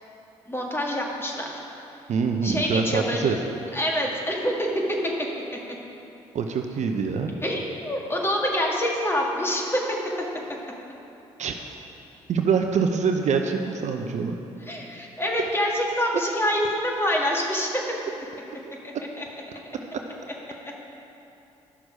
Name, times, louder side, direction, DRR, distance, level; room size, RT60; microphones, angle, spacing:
voice 1, 0.5-1.5 2.4-3.4 3.7-5.1 7.4-9.8 14.7-17.8 18.8-19.3, equal, 15° left, -2 dB, 2.0 m, -26 dB
voice 2, 2.1-3.4 6.3-7.3 11.4-11.5 12.3-14.4 18.6-18.7, right 5 dB, 55° right, 4 dB, 0.7 m, -24 dB
11.5 x 6.2 x 5.0 m, 2.9 s
hypercardioid pair, 45°, 14 cm